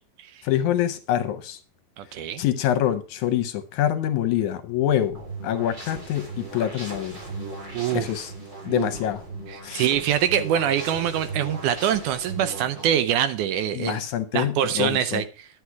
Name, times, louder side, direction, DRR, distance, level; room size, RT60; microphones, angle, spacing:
voice 1, 0.4-1.6 2.4-7.1 7.9-8.3 8.7-9.2 9.6-9.9 13.8-15.2, left 11 dB, 75° left, 10 dB, 1.9 m, -25 dB
voice 2, 2.0-2.4 7.7-8.1 8.7-8.9 9.5-14.0 14.3-15.2, right 10 dB, 75° right, 12 dB, 2.0 m, -24 dB
sound 1, 4.9-12.9, right 2 dB, 25° right, 3.7 m, -37 dB
10.5 x 8.2 x 4.7 m, 0.35 s
omnidirectional pair, 3.9 m